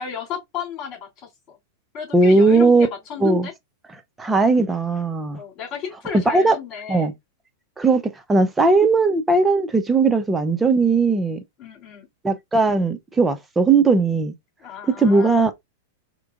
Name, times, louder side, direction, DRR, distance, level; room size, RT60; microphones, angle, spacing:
voice 1, 0.0-1.6 1.9-3.5 5.3-7.1 11.6-12.1 14.6-15.5, left 7 dB, 35° left, 3.1 m, -34 dB
voice 2, 2.1-2.9 3.2-3.5 4.2-5.4 6.1-6.5 6.9-7.1 7.8-8.0 8.3-11.4 12.2-14.3 15.0-15.5, right 3 dB, 15° right, 0.8 m, -18 dB
4.7 x 3.0 x 2.5 m
hypercardioid pair, 105°, 0 cm